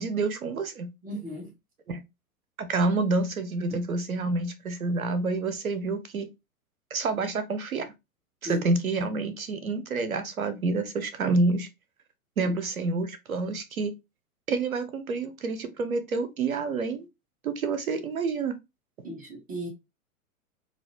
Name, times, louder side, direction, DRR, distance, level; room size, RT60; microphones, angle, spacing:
voice 1, 0.0-0.9 1.9-2.0 2.6-6.3 6.9-7.9 8.4-11.7 12.4-13.9 14.5-17.1 17.4-18.5, right 3 dB, 75° right, 0.9 m, -28 dB
voice 2, 1.0-1.5 3.7-3.8 8.4-8.6 12.4-12.5 19.0-19.7, equal, 20° right, 1.5 m, -36 dB
4.1 x 2.3 x 3.0 m
figure-of-eight pair, 100°, 42 cm